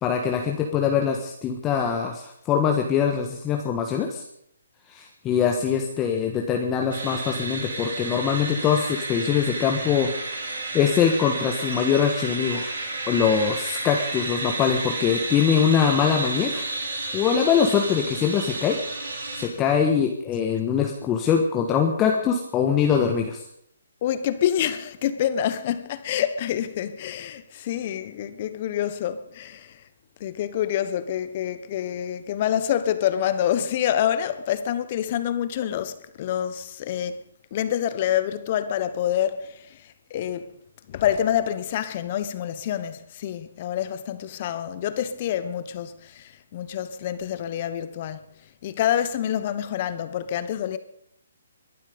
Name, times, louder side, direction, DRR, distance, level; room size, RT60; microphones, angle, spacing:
voice 1, 0.0-4.2 4.9-12.7 13.1-16.7 17.1-23.4, left 7 dB, 15° left, 1.4 m, -23 dB
sound 1, 6.9-19.5, right 2 dB, 80° right, 7.5 m, -31 dB
voice 2, 24.0-29.8 30.2-37.2 37.5-40.6 40.9-48.2 48.6-50.8, left 10 dB, 35° left, 1.2 m, -27 dB
22.0 x 12.0 x 5.3 m
hypercardioid pair, 155°, 0 cm